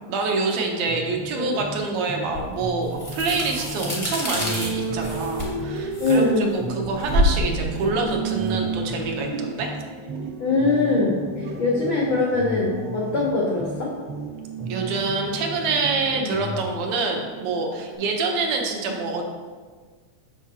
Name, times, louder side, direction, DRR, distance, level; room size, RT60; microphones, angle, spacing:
voice 1, 0.1-9.7 14.7-19.2, right 3 dB, 75° right, 2 dB, 1.9 m, -26 dB
sound 1, 0.9-2.3 2.6-6.3 6.6-10.3 10.6-14.3 14.6-16.7, right 1 dB, 40° right, 1.2 m, -36 dB
sound 2, 2.3-9.1, left 1 dB, 25° left, 0.6 m, -28 dB
sound 3, 4.2-18.0, right 5 dB, 90° right, 2.1 m, -34 dB
voice 2, 6.0-6.6 10.4-13.9 16.1-16.3, left 3 dB, 85° left, -4 dB, 1.1 m, -22 dB
6.5 x 6.1 x 2.7 m, 1.5 s
omnidirectional pair, 3.3 m